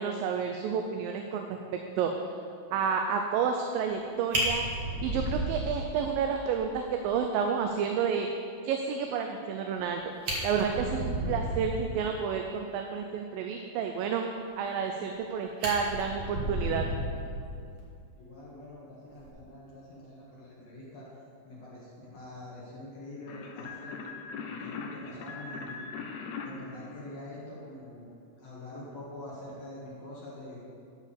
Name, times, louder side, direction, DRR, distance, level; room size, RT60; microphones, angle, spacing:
voice 1, 0.0-1.6 2.0-2.1 2.7-4.7 5.0-8.3 8.6-10.0 10.4-14.2 14.6-16.9, right 6 dB, 85° right, 4 dB, 2.3 m, -30 dB
Fire, 3.9-4.0 4.3-6.2 6.6-6.7 7.1-7.2 7.5-7.6 9.8-9.9 10.1-11.9 14.7-15.2 15.6-17.8 19.1-19.3, right 1 dB, 40° right, 2.1 m, -33 dB
voice 2, 18.2-21.1 21.4-24.1 24.5-25.8 26.4-28.1 28.4-30.6, left 1 dB, 55° left, -7 dB, 2.6 m, -45 dB
sound 1, 23.3-27.7, left 4 dB, 90° left, 1.5 m, -41 dB
11.5 x 4.7 x 7.0 m, 2.4 s
omnidirectional pair, 4.0 m